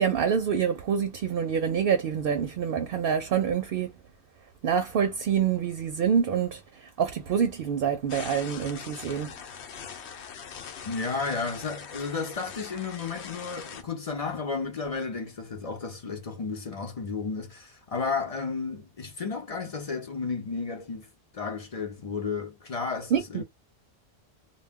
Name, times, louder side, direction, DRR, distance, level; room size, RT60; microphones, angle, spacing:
voice 1, 0.0-3.9 4.6-9.3 23.1-23.4, right 7 dB, 65° right, 0.7 m, -26 dB
sound 1, 8.1-13.8, left 7 dB, 80° left, 0.9 m, -42 dB
voice 2, 10.9-23.4, left 4 dB, 40° left, 0.6 m, -33 dB
2.2 x 2.1 x 3.4 m
omnidirectional pair, 1.1 m